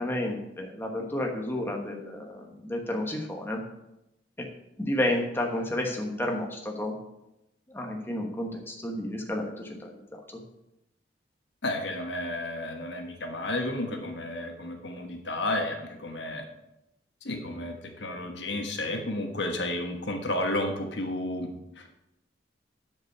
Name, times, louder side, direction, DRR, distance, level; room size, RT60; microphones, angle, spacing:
voice 1, 0.0-3.6 4.4-4.5 4.8-7.0 7.7-10.4, left 1 dB, 10° left, 1 dB, 1.2 m, -31 dB
voice 2, 11.6-16.4 17.2-21.5 21.8-21.9, left 1 dB, 70° left, 4 dB, 1.3 m, -32 dB
10.0 x 5.3 x 6.7 m, 0.89 s
head